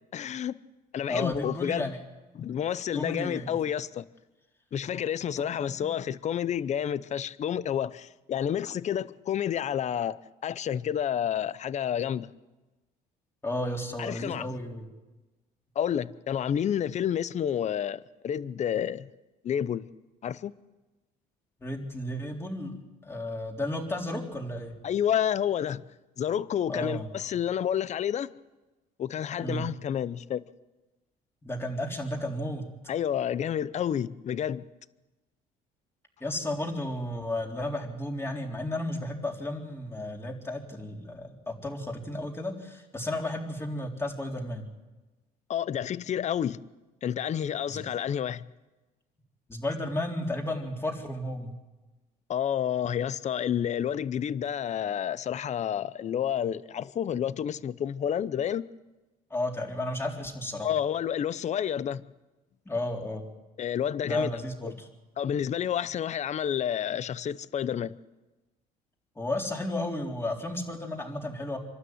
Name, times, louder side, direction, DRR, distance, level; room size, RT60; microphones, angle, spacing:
voice 1, 0.1-0.6 0.9-1.9 2.4-4.1 4.7-10.2 10.4-12.3 14.0-14.5 15.8-19.1 19.4-19.9 20.2-20.5 24.8-25.8 26.2-28.3 29.0-30.4 32.9-34.6 45.5-46.6 47.0-48.4 52.3-58.7 60.6-62.0 63.6-64.3 64.6-64.7 65.2-67.9, left 9 dB, 45° left, 0.7 m, -29 dB
voice 2, 1.1-2.0 2.9-3.6 5.7-5.9 13.4-14.9 21.6-24.7 26.7-27.1 29.4-29.7 31.4-32.6 36.2-44.7 47.7-47.8 49.5-51.6 59.3-60.7 62.7-63.2 64.0-64.9 69.2-71.6, left 1 dB, 15° left, 3.9 m, -33 dB
26.5 x 12.5 x 9.5 m
cardioid pair, 110°, 17 cm